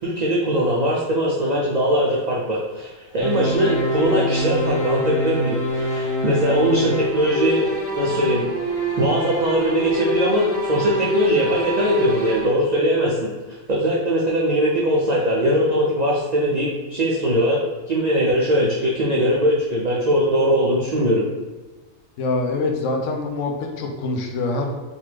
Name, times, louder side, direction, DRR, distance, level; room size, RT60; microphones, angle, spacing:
voice 1, 0.0-7.6 7.9-8.4 9.0-13.3 13.7-17.6 17.9-21.3, equal, 80° right, -4 dB, 0.3 m, -20 dB
sound 1, 3.2-12.5, equal, 20° left, 0.7 m, -25 dB
voice 2, 22.2-24.7, left 3 dB, 75° left, 2 dB, 0.9 m, -24 dB
3.0 x 2.3 x 3.2 m, 1.2 s
omnidirectional pair, 1.4 m